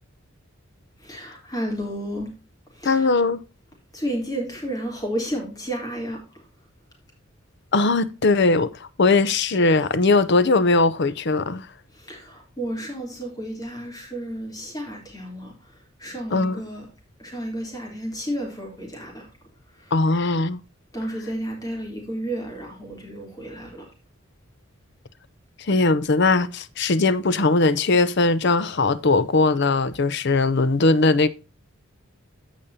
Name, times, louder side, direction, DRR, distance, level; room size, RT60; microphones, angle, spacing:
voice 1, 1.0-2.3 2.7-3.2 3.9-6.2 11.9-15.5 16.0-16.9 17.2-19.3 19.8-19.9 20.9-23.9, equal, 15° left, 3.3 m, -32 dB
voice 2, 2.8-3.4 7.7-11.7 16.3-16.6 19.9-20.6 25.6-31.3, left 3 dB, 50° left, 0.6 m, -20 dB
15.5 x 5.2 x 2.7 m
head